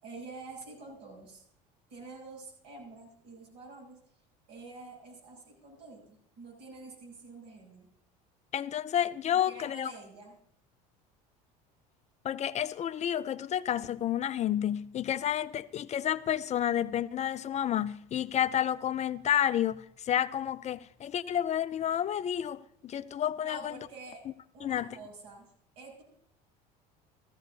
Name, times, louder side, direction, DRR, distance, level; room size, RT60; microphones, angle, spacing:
voice 1, 0.0-1.4 1.9-4.0 4.5-7.9 9.3-10.3 23.4-24.2 24.5-26.0, right 3 dB, 80° right, 6.7 m, -48 dB
voice 2, 8.5-9.9 12.2-23.8 24.6-24.9, left 10 dB, 35° left, 0.5 m, -30 dB
15.5 x 14.5 x 2.7 m
supercardioid pair, 90°, 19 cm